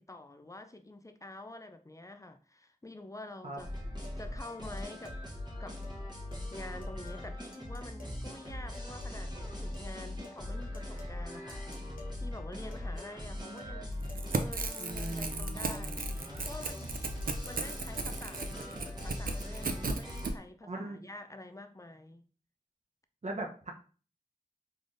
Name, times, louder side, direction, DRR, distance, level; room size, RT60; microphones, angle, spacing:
voice 1, 0.0-3.8 4.2-5.2 5.6-5.8 6.5-11.9 12.2-14.0 14.4-16.0 16.4-17.0 17.5-22.2, left 2 dB, 20° left, 0.4 m, -47 dB
sound 1, 3.6-20.3, left 1 dB, 30° right, 1.1 m, -40 dB
sound 2, 4.0-4.2 4.8-5.2 5.8-6.0 6.3-6.5 6.8-7.3 7.5-8.2 8.7-9.2 9.7-9.9 10.2-10.4 10.7-11.2 11.5-12.2 12.7-13.2 13.6-13.8 14.1-14.5 14.8-15.9 16.5-16.9 17.2-17.7 17.9-18.1 18.4-19.5, left 2 dB, 70° left, 0.8 m, -53 dB
Crackle / Tearing, 14.0-20.3, right 4 dB, 70° right, 0.5 m, -36 dB
voice 2, 14.8-16.3 20.7-21.0 23.2-23.7, right 2 dB, 50° right, 0.8 m, -40 dB
3.7 x 3.3 x 2.6 m
wide cardioid pair, 60°, 15 cm